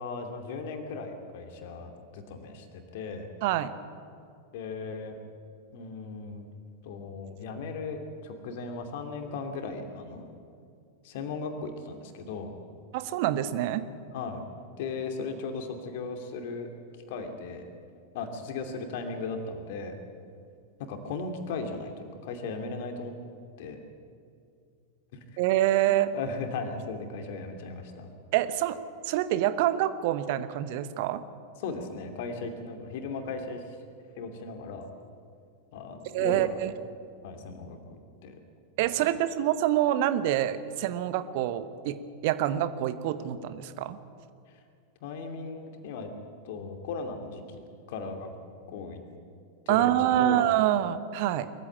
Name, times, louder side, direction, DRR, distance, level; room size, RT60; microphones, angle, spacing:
voice 1, 0.0-3.3 4.5-5.2 5.7-6.5 6.8-10.3 11.0-12.5 14.1-14.4 14.8-16.7 17.1-17.6 18.1-19.9 20.8-23.1 23.6-23.8 25.1-25.4 25.9-28.1 31.6-33.6 34.2-34.9 35.7-36.6 37.2-38.4 45.0-46.1 46.4-47.6 47.9-48.3 48.7-49.0 49.7-50.4, left 4 dB, 50° left, 5 dB, 2.7 m, -37 dB
voice 2, 12.9-13.8 25.4-26.1 28.3-28.8 29.0-31.2 36.1-36.7 38.8-42.0 42.2-44.0 49.7-51.5, right 12 dB, 50° right, 13 dB, 1.0 m, -26 dB
22.5 x 15.0 x 8.8 m, 2.4 s
figure-of-eight pair, 90°, 0 cm